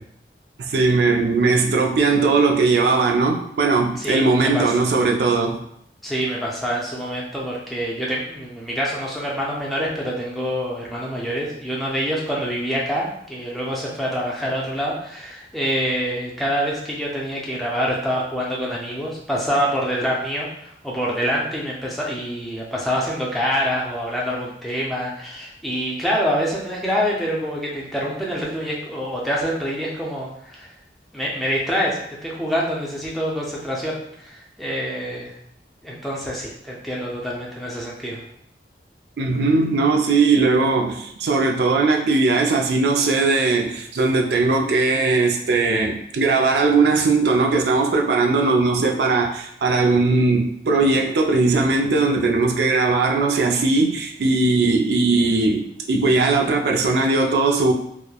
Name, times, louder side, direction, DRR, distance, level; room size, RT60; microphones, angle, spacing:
voice 1, 0.6-5.6 39.2-57.7, right 3 dB, 70° right, 1 dB, 0.4 m, -19 dB
voice 2, 4.0-4.7 6.0-30.7 31.1-35.3 35.8-38.2, equal, ahead, -5 dB, 0.4 m, -26 dB
3.0 x 2.1 x 2.2 m, 0.72 s
head